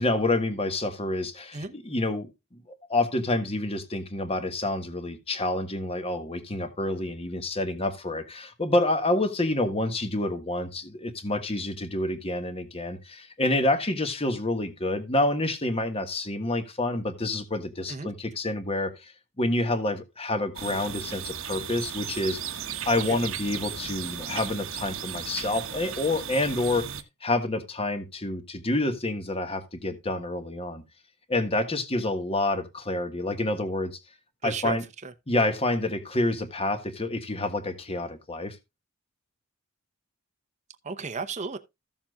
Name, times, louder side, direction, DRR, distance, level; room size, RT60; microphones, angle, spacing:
voice 1, 0.0-2.3 2.7-19.1 19.4-22.4 22.8-30.8 31.3-34.0 34.4-34.8 35.3-38.6, left 2 dB, 25° left, 1.4 m, -28 dB
sound 1, 20.6-27.0, right 8 dB, 65° right, 1.1 m, -36 dB
voice 2, 34.4-35.1 40.8-41.6, right 4 dB, 30° right, 0.8 m, -34 dB
15.0 x 7.2 x 2.3 m
head